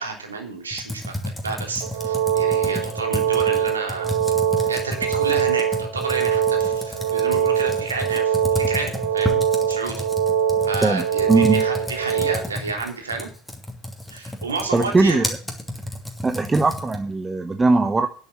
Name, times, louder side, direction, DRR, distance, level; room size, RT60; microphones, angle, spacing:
voice 1, 0.0-4.1 4.7-9.4 9.7-10.0 10.7-13.3 14.1-15.3, right 4 dB, 80° right, 3 dB, 3.2 m, -30 dB
Computer keyboard, 0.7-17.1, left 1 dB, 5° left, 2.8 m, -32 dB
sound 1, 1.8-12.4, right 8 dB, 60° right, 2.0 m, -22 dB
voice 2, 10.8-11.6 14.7-15.3 16.2-18.1, right 3 dB, 15° right, 8 dB, 0.9 m, -20 dB
10.5 x 7.4 x 7.6 m, 0.40 s
figure-of-eight pair, 70°, 0 cm